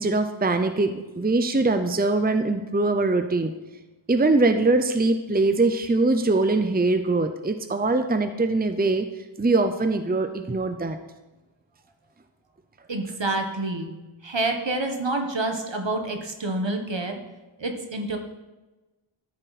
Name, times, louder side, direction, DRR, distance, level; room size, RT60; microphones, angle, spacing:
voice 1, 0.0-3.5 4.1-9.1 9.4-11.0, right 2 dB, 20° right, 8 dB, 0.7 m, -22 dB
voice 2, 12.9-13.9 14.2-17.1 17.6-18.2, right 2 dB, 65° right, 4 dB, 1.5 m, -27 dB
13.5 x 7.6 x 4.2 m, 1.1 s
wide cardioid pair, 45°, 48 cm